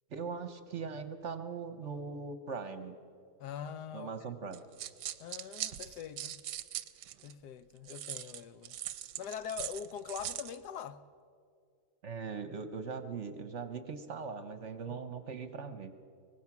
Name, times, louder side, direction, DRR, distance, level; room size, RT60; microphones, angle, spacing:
voice 1, 0.1-3.0 3.9-4.6 12.0-15.9, right 5 dB, 50° right, 1.0 m, -40 dB
voice 2, 3.4-4.1 5.2-6.4 7.2-8.8 9.2-11.0 14.9-15.0, left 8 dB, 75° left, 1.2 m, -43 dB
sound 1, 4.5-7.3 7.9-10.6, right 12 dB, 90° right, 1.3 m, -41 dB
24.0 x 19.0 x 6.0 m
omnidirectional pair, 1.8 m